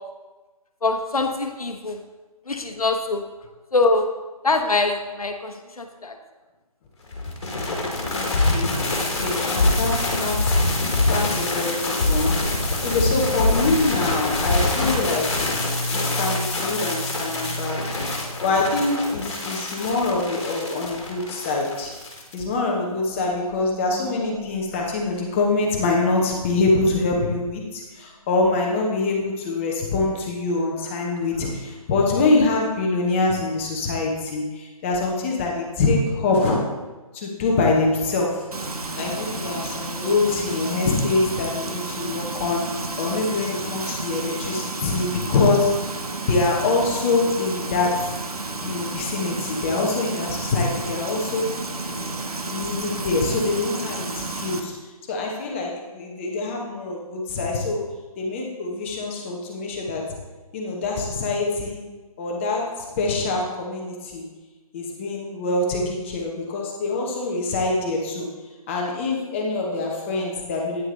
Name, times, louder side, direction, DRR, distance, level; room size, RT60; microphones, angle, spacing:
voice 1, 0.8-2.0 2.5-3.2 3.7-4.0 4.4-6.1, left 3 dB, 70° left, 5 dB, 1.1 m, -23 dB
sound 1, 7.1-22.4, left 2 dB, 50° left, 2.0 m, -24 dB
voice 2, 8.0-8.8 9.2-10.6 11.1-12.4 12.8-17.9 18.4-21.9 22.3-36.7 37.1-38.5 38.9-45.8 46.3-48.2 48.6-51.5 52.5-54.7 55.1-57.8 58.2-60.1 60.5-61.8 62.2-64.3 64.7-68.3 68.7-70.8, left 3 dB, 20° left, -1 dB, 1.1 m, -24 dB
sound 2, 15.0-19.5 19.8-20.0 20.3-20.6 20.9-21.2 21.8-21.9 22.9-26.1, equal, 40° right, 2.7 m, -36 dB
Frying (food), 38.5-54.6, right 3 dB, 75° right, 1.0 m, -31 dB
9.6 x 6.2 x 3.9 m, 1.2 s
figure-of-eight pair, 150°, 19 cm